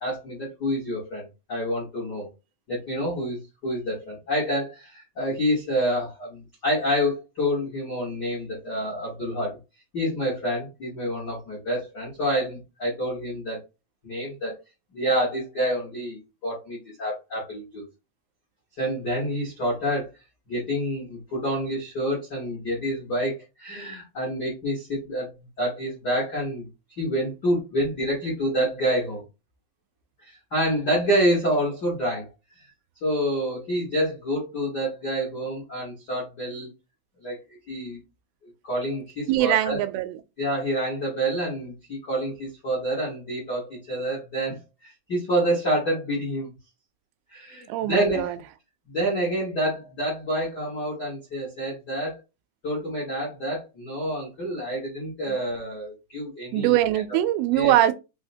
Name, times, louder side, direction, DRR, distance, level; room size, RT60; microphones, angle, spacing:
voice 1, 0.0-2.3 2.7-9.6 9.9-13.6 14.0-14.5 14.9-17.8 18.8-20.1 20.5-25.3 25.6-26.7 27.0-29.2 30.2-32.3 32.6-32.7 33.0-36.7 37.2-37.4 37.7-38.0 38.6-39.8 40.4-46.5 47.3-48.3 48.9-52.2 52.6-56.8 57.5-57.7, equal, 85° left, 0.9 m, -27 dB
voice 2, 39.3-40.2 47.7-48.4 55.3-55.4 56.5-57.9, right 13 dB, 90° right, 2.4 m, -22 dB
5.5 x 2.1 x 2.6 m
omnidirectional pair, 4.1 m